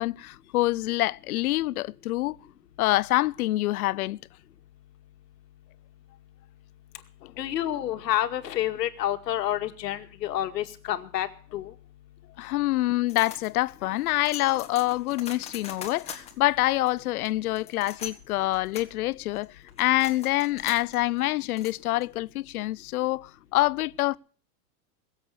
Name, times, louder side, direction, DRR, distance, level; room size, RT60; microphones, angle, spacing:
voice 1, 0.0-2.4 2.8-4.2 7.2-7.3 12.4-19.5 19.8-24.2, left 17 dB, 65° left, 0.6 m, -26 dB
voice 2, 7.4-11.3 11.5-11.7, left 12 dB, 80° left, 2.2 m, -29 dB
sound 1, 13.1-22.3, left 7 dB, 15° left, 2.0 m, -44 dB
21.5 x 7.9 x 7.0 m
supercardioid pair, 165°, 48 cm